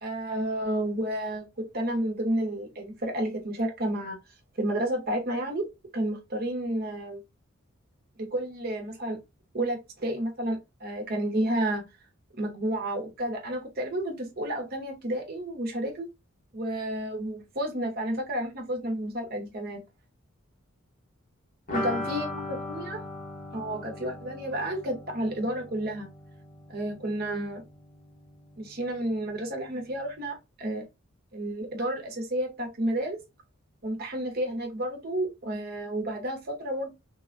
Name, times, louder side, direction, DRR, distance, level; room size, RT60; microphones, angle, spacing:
voice 1, 0.0-4.2 4.6-5.7 5.9-7.2 8.2-9.2 9.5-11.8 12.4-16.1 16.5-19.8 21.7-23.0 23.5-26.1 26.7-27.6 28.6-30.9 31.3-33.2 33.8-36.9, right 1 dB, 45° right, 0.8 m, -31 dB
sound 1, 21.7-27.3 27.5-27.6 27.9-28.0, left 1 dB, 40° left, 0.8 m, -38 dB
3.5 x 2.2 x 2.4 m
head